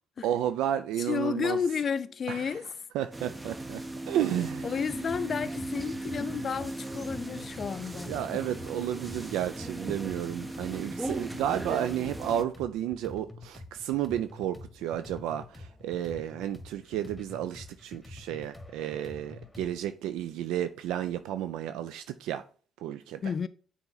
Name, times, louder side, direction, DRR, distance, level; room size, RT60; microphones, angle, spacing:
voice 1, 0.2-1.6 2.3-2.6 2.9-3.8 4.1-4.8 8.0-22.4 22.8-23.3, right 11 dB, 85° right, 0.3 m, -32 dB
voice 2, 1.1-2.7 4.6-8.2 23.2-23.5, left 6 dB, 45° left, 0.4 m, -31 dB
sound 1, 3.1-12.4, right 2 dB, 20° right, 0.7 m, -37 dB
sound 2, 4.8-19.8, left 2 dB, 10° left, 1.3 m, -47 dB
7.0 x 4.2 x 3.9 m
supercardioid pair, 75°, 0 cm